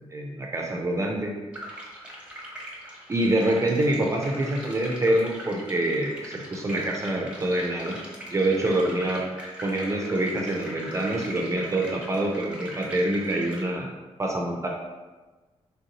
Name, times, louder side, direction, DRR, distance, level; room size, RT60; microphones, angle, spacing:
voice 1, 0.1-1.3 3.1-8.0 8.3-9.2 9.6-13.9 14.2-14.7, right 1 dB, 25° right, 0 dB, 0.4 m, -26 dB
sound 1, 1.5-13.6, equal, 10° right, 0.8 m, -41 dB
3.2 x 2.6 x 2.8 m, 1.2 s
cardioid pair, 90°, 11 cm